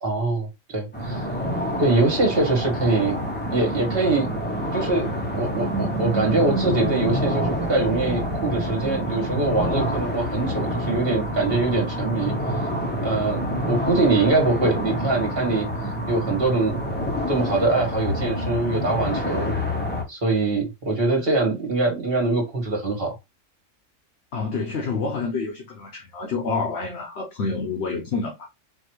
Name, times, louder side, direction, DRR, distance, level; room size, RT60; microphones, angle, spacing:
voice 1, 0.0-1.3 1.8-3.2 3.5-4.3 4.7-12.3 13.0-15.7 16.1-16.8 17.3-19.6 20.1-23.1, right 3 dB, 50° right, 2.0 m, -23 dB
sound 1, 0.9-20.0, equal, 10° left, 0.9 m, -27 dB
voice 2, 24.3-28.5, left 4 dB, 60° left, 1.1 m, -28 dB
4.3 x 2.9 x 3.1 m
omnidirectional pair, 1.3 m